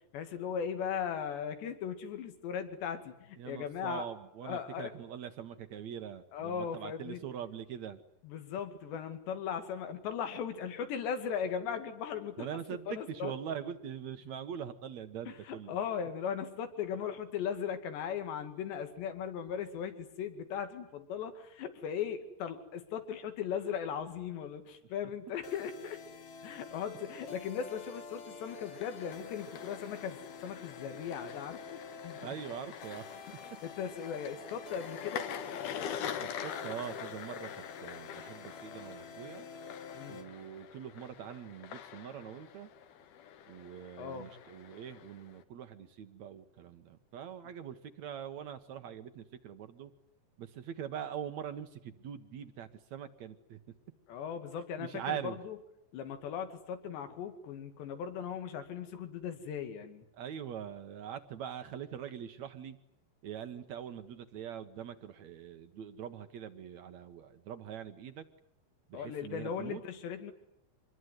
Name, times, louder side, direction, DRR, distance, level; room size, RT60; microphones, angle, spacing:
voice 1, 0.1-4.1 4.4-4.9 6.3-7.2 8.2-12.5 12.9-13.3 15.3-26.0 26.4-32.4 33.3-35.3 40.0-40.2 44.0-44.3 54.1-55.6 55.9-60.1 68.9-70.3, left 7 dB, 85° left, 8 dB, 4.5 m, -38 dB
voice 2, 3.4-8.0 12.4-15.8 32.2-33.4 36.2-39.5 40.1-42.7 43.5-49.9 50.4-53.6 54.8-55.4 60.1-62.8 63.2-68.3 68.9-69.8, right 9 dB, 65° right, 9 dB, 1.8 m, -43 dB
sound 1, 25.4-40.3, left 5 dB, 50° left, 2.9 m, -48 dB
sound 2, 28.5-45.4, left 9 dB, 70° left, 3.3 m, -45 dB
26.5 x 21.0 x 9.7 m, 0.80 s
omnidirectional pair, 4.9 m